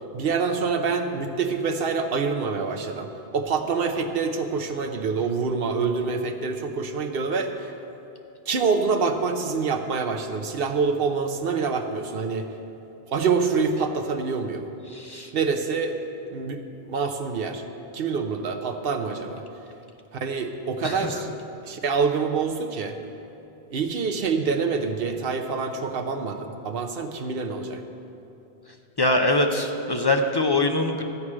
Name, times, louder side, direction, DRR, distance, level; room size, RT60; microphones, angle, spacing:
voice 1, 0.1-7.7 8.5-12.5 13.1-14.6 15.3-16.0 16.3-17.6 17.9-19.4 20.1-21.3 21.6-23.0 23.7-27.8, right 5 dB, 60° right, 6 dB, 1.0 m, -26 dB
voice 2, 14.9-15.3 20.8-21.2 29.0-31.0, left 2 dB, 30° left, 3 dB, 0.5 m, -23 dB
13.5 x 4.8 x 8.7 m, 2.9 s
omnidirectional pair, 1.1 m